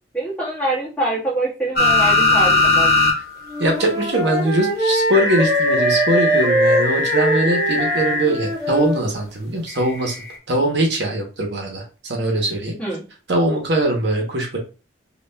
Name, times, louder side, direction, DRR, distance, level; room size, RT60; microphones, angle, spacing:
voice 1, 0.1-2.9 12.8-13.0, right 1 dB, 5° left, -7 dB, 1.4 m, -24 dB
sound 1, 1.8-3.2 3.5-3.6 5.1-8.3 9.9-10.0, left 3 dB, 50° left, 1.0 m, -19 dB
Wind instrument woodwind instrument, 3.5-9.0, right 1 dB, 20° right, 1.3 m, -22 dB
voice 2, 3.6-10.2 10.5-12.8 13.3-14.6, right 1 dB, 65° right, 1 dB, 0.9 m, -21 dB
5.4 x 2.4 x 2.2 m, 0.33 s
head